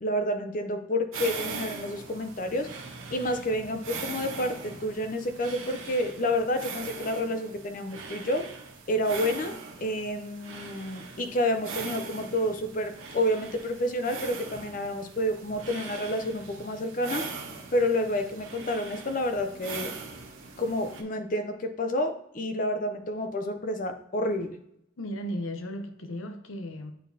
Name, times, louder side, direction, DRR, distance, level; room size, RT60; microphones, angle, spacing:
voice 1, 0.0-2.7 3.1-8.5 8.9-17.3 17.7-19.9 20.6-24.6, left 1 dB, 40° left, 0.5 m, -29 dB
sound 1, 1.1-21.0, right 4 dB, 80° right, 1.0 m, -41 dB
voice 2, 25.0-26.9, equal, 80° left, 0.7 m, -35 dB
9.2 x 3.9 x 2.8 m
head